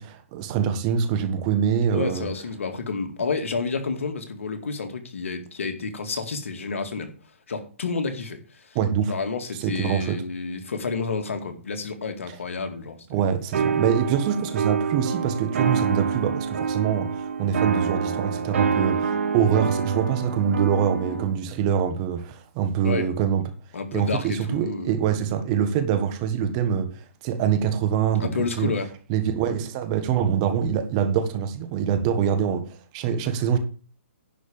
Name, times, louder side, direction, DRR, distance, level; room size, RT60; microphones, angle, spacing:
voice 1, 0.0-2.3 8.7-9.1 9.6-10.2 13.1-23.5 23.9-28.7 29.1-33.6, right 8 dB, 30° right, 1.5 m, -24 dB
voice 2, 1.9-7.1 7.5-8.8 9.1-13.2 22.8-23.1 23.7-24.9 28.2-28.9, left 4 dB, 75° left, 2.1 m, -30 dB
sound 1, 13.5-21.3, right 6 dB, 65° right, 1.7 m, -26 dB
10.5 x 4.9 x 7.2 m
hypercardioid pair, 150°, 7 cm